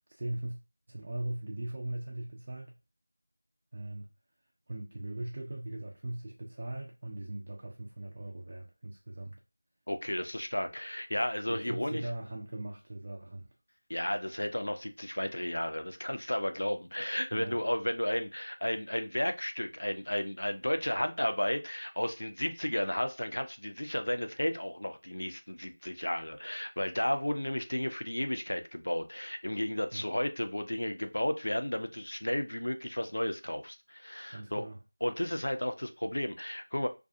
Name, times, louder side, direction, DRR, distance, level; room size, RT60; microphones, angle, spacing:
voice 1, 0.1-0.6 0.9-2.7 3.7-4.1 4.7-9.4 11.5-13.5 17.3-17.6 29.9-30.0 34.3-34.8, right 1 dB, 30° right, 0.4 m, -39 dB
voice 2, 9.9-12.0 13.9-34.7 35.0-36.9, left 1 dB, 80° left, 0.5 m, -33 dB
2.3 x 2.2 x 2.6 m
figure-of-eight pair, 175°, 0 cm